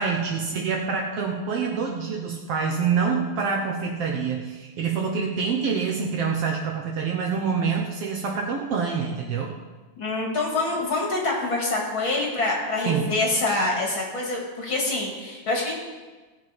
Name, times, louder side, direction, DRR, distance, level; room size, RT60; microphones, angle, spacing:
voice 1, 0.0-9.5 12.8-13.1, right 5 dB, 60° right, 0 dB, 1.8 m, -26 dB
voice 2, 10.0-15.7, left 2 dB, 45° left, -1 dB, 2.6 m, -26 dB
18.0 x 7.2 x 5.3 m, 1.3 s
omnidirectional pair, 3.5 m